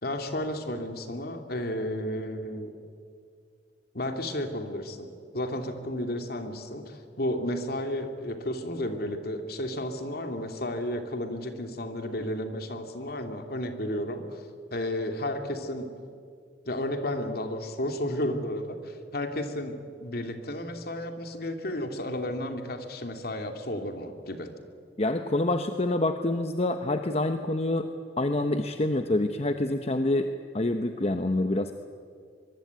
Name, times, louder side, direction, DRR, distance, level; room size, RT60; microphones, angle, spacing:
voice 1, 0.0-2.8 3.9-5.1 5.3-14.5 14.7-15.9 16.7-24.5, left 1 dB, 60° left, 6 dB, 2.7 m, -32 dB
voice 2, 25.0-27.9 28.2-30.3 30.5-31.7, left 2 dB, 35° left, 7 dB, 1.0 m, -26 dB
23.5 x 23.0 x 9.4 m, 2.2 s
head